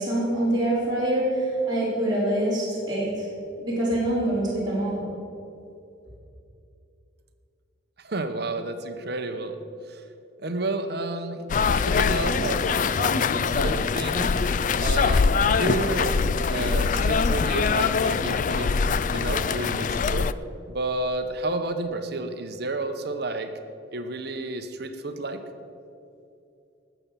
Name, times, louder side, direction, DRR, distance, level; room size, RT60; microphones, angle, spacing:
voice 1, 0.0-3.3 3.6-5.0, right 1 dB, 20° right, -9 dB, 4.3 m, -25 dB
voice 2, 8.0-9.6 9.9-10.0 10.4-11.4 11.9-14.4 14.8-16.2 16.5-18.8 19.1-20.3 20.7-23.5 23.9-25.4, right 2 dB, 50° right, 7 dB, 0.9 m, -31 dB
sound 1, 11.5-20.3, left 5 dB, 40° left, 0.3 m, -23 dB
19.5 x 7.0 x 7.5 m, 2.6 s
head